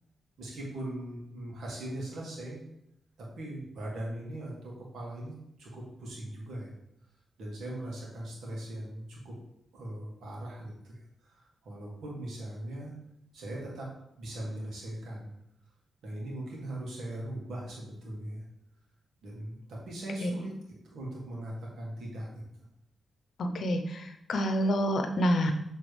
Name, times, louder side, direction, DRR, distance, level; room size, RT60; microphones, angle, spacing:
voice 1, 0.4-2.6 3.2-6.7 7.4-9.4 9.7-12.9 13.3-13.9 14.2-15.3 16.0-18.4 19.2-20.5 20.8-22.4, right 1 dB, 80° right, -3 dB, 2.2 m, -40 dB
voice 2, 23.4-25.5, equal, 70° left, 6 dB, 0.7 m, -28 dB
7.5 x 3.9 x 3.3 m, 0.80 s
supercardioid pair, 50°, 0 cm